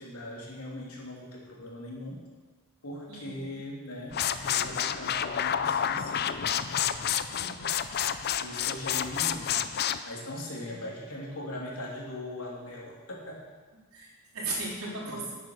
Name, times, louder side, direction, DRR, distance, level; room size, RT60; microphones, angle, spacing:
voice 1, 0.0-2.2 2.8-7.1 8.4-9.6 10.0-13.4, left 1 dB, 85° left, -3 dB, 3.1 m, -40 dB
voice 2, 3.1-3.6 7.3-7.8 10.6-10.8 13.9-15.4, right 2 dB, 80° right, -5 dB, 4.0 m, -37 dB
sound 1, 4.1-10.0, left 9 dB, 50° left, 0.5 m, -29 dB
10.5 x 9.0 x 6.6 m, 1.3 s
head